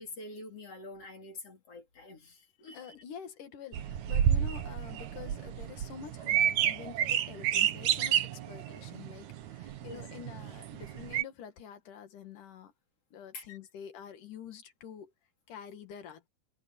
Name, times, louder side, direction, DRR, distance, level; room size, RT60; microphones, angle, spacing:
voice 1, 0.0-3.0 9.8-10.0 13.3-13.6, left 2 dB, 40° left, 4.2 m, -46 dB
voice 2, 2.7-12.7 13.1-15.1 15.5-16.2, left 8 dB, 60° left, 3.5 m, -47 dB
sound 1, 3.7-11.2, right 10 dB, 60° right, 2.2 m, -30 dB
omnidirectional pair, 4.2 m